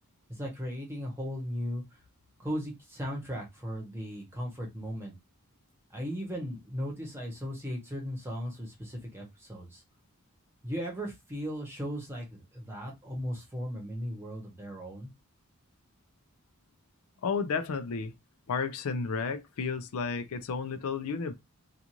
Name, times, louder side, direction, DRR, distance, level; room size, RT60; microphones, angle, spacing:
voice 1, 0.3-1.8 2.4-5.1 5.9-9.8 10.6-15.1, equal, 10° right, 1.0 m, -37 dB
voice 2, 17.2-18.1 18.5-21.3, left 5 dB, 75° left, 0.4 m, -32 dB
2.5 x 2.4 x 2.9 m
head